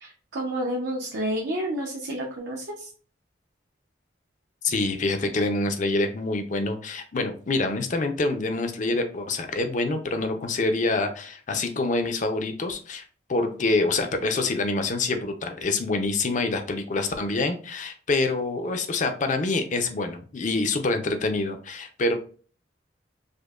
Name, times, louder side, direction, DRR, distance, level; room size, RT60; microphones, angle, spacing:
voice 1, 0.0-2.9, right 1 dB, 70° right, -2 dB, 0.7 m, -30 dB
voice 2, 4.6-13.0 13.3-22.2, left 3 dB, 45° left, 6 dB, 0.5 m, -26 dB
5.0 x 2.1 x 2.3 m, 0.41 s
head